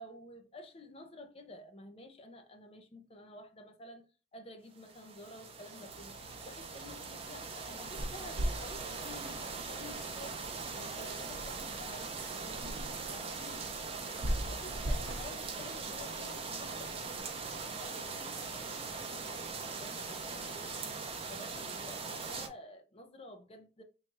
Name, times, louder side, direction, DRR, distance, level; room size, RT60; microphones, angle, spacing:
voice 1, 0.0-4.1 4.3-10.4 10.7-13.6 14.1-17.3 17.8-20.8 21.3-23.8, left 1 dB, 30° left, 0.6 m, -51 dB
sound 1, 4.8-22.5, right 4 dB, 30° right, 0.6 m, -41 dB
sound 2, 5.9-11.9, equal, 85° left, 0.5 m, -57 dB
sound 3, 7.7-17.0, equal, 70° right, 0.7 m, -41 dB
3.1 x 2.4 x 4.0 m
head